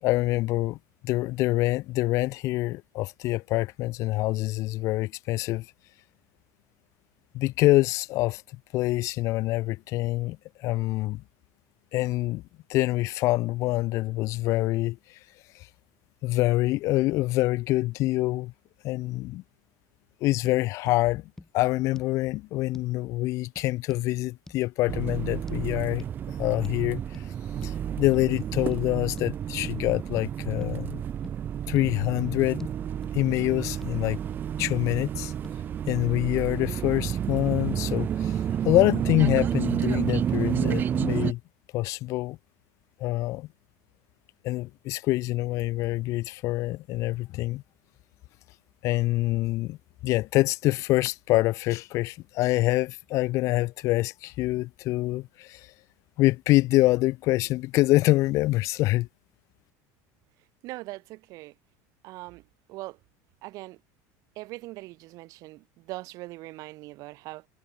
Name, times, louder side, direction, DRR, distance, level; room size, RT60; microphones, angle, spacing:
voice 1, 0.0-0.8 1.0-5.7 7.3-8.4 8.7-11.2 11.9-12.4 12.7-15.2 15.5-15.7 16.2-18.5 18.8-19.4 20.2-21.2 21.5-26.1 26.4-27.2 27.6-31.0 31.7-32.7 33.1-34.2 34.6-35.3 35.9-41.4 41.7-42.4 43.0-43.5 44.4-47.6 48.8-49.8 50.0-55.7 56.2-59.1, left 18 dB, 35° left, 0.4 m, -26 dB
sound 1, 20.9-21.0 21.4-21.5 22.0-22.2 22.7-22.9 23.6-24.1 24.5-24.6 25.5-25.6 26.0-26.1 26.6-26.8 27.1-27.3 27.6-27.8 28.1-28.3 28.7-28.8 29.2-29.3 29.6-29.8 30.2-30.3 30.6-30.8 31.2-31.4 31.8-31.9 32.2-32.3 32.6-32.7 33.0-33.5 33.8-33.9 34.3-34.8 35.4-35.6 35.9-36.0, left 2 dB, 5° left, 3.4 m, -45 dB
sound 2, 24.9-41.3, right 9 dB, 20° right, 0.9 m, -30 dB
voice 2, 60.6-61.5 62.0-62.4 62.7-63.0 63.4-63.8 64.4-67.5, right 20 dB, 40° right, 2.1 m, -41 dB
cardioid pair, 170°, 9 cm